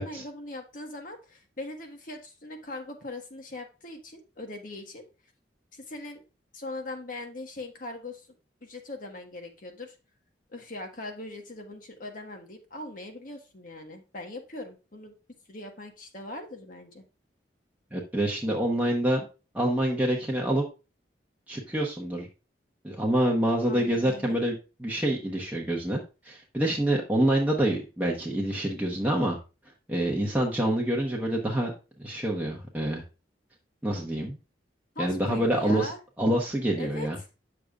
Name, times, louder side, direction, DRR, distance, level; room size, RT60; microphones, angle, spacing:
voice 1, 0.0-5.1 5.7-6.2 6.5-8.3 8.6-9.9 10.5-15.1 15.5-17.0 23.6-24.4 34.9-36.0 36.8-37.1, left 2 dB, 50° left, 4 dB, 1.5 m, -40 dB
voice 2, 17.9-19.3 19.5-20.6 21.5-22.3 22.8-29.4 29.9-31.7 32.0-33.0 33.8-34.4 35.0-35.9 36.2-37.2, right 1 dB, 10° right, -2 dB, 1.0 m, -26 dB
9.2 x 6.6 x 2.4 m, 0.31 s
head